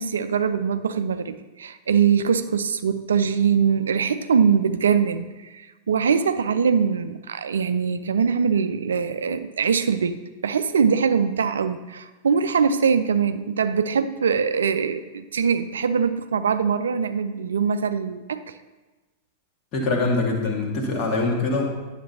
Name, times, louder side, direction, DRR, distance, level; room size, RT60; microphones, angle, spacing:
voice 1, 0.0-10.2 10.4-18.5, right 6 dB, 70° right, 11 dB, 0.3 m, -22 dB
voice 2, 19.7-21.7, left 3 dB, 40° left, 0 dB, 1.7 m, -23 dB
10.0 x 7.2 x 2.8 m, 1.2 s
figure-of-eight pair, 90°, 0 cm